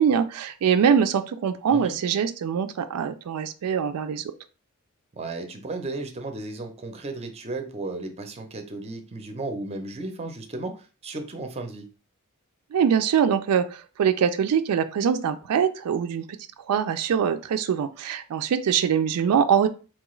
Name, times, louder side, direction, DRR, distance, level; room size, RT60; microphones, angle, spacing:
voice 1, 0.0-4.2 12.7-16.2 16.7-19.7, right 7 dB, 85° right, 9 dB, 0.4 m, -23 dB
voice 2, 5.1-11.9, right 2 dB, 30° right, 5 dB, 0.5 m, -34 dB
4.3 x 2.3 x 3.0 m, 0.35 s
head